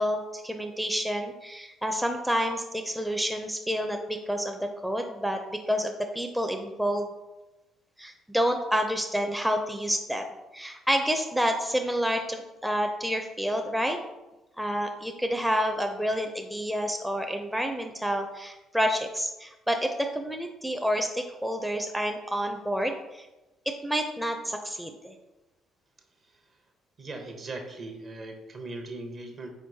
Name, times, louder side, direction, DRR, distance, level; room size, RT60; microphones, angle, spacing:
voice 1, 0.0-7.1 8.0-10.3 10.5-14.0 14.6-23.3 23.7-25.2, equal, 5° right, 4 dB, 0.5 m, -29 dB
voice 2, 27.0-29.5, right 2 dB, 45° right, 4 dB, 0.8 m, -39 dB
4.4 x 4.4 x 2.7 m, 1.0 s
hypercardioid pair, 50°, 0 cm